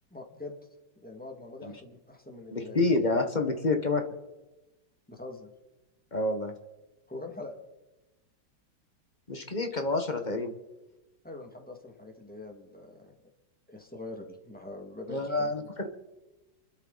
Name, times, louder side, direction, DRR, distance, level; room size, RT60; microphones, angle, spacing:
voice 1, 0.1-0.6 1.0-2.8 5.1-5.5 7.1-7.6 11.2-13.2 13.7-15.7, left 2 dB, 5° left, 2 dB, 2.0 m, -43 dB
voice 2, 2.5-4.0 6.1-6.5 9.3-10.5 15.1-16.0, left 2 dB, 25° left, 6 dB, 1.3 m, -28 dB
28.0 x 12.5 x 4.1 m, 1.0 s
omnidirectional pair, 2.1 m